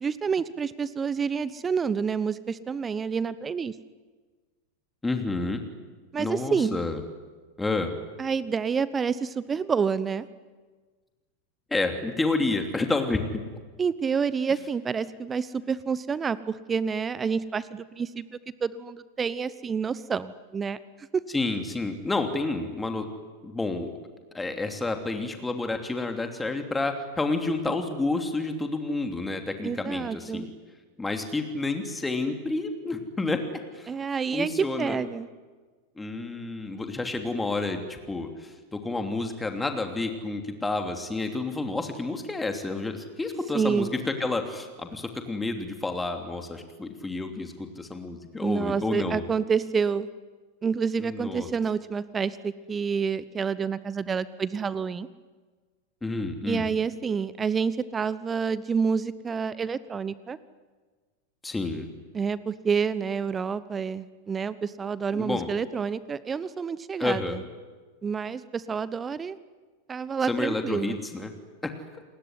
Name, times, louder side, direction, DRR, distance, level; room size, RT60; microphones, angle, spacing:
voice 1, 0.0-3.7 6.1-6.8 8.2-10.3 13.8-18.2 18.6-20.8 21.1-21.2 29.6-30.5 33.9-35.3 43.5-43.9 48.4-50.1 50.6-55.1 56.4-60.4 62.1-67.4 68.0-69.4 69.9-71.0, right 6 dB, 20° right, 18 dB, 0.9 m, -28 dB
voice 2, 5.0-5.6 6.2-7.0 7.6-7.9 11.7-13.4 21.3-23.1 23.4-23.9 24.3-30.5 31.0-33.4 33.7-33.9 34.3-35.0 36.0-49.3 51.0-51.5 56.0-56.7 61.4-61.9 65.1-65.5 67.0-67.4 70.3-71.3 71.6-71.7, left 3 dB, 10° left, 5 dB, 3.1 m, -30 dB
29.5 x 20.0 x 9.7 m, 1.4 s
figure-of-eight pair, 90°, 0 cm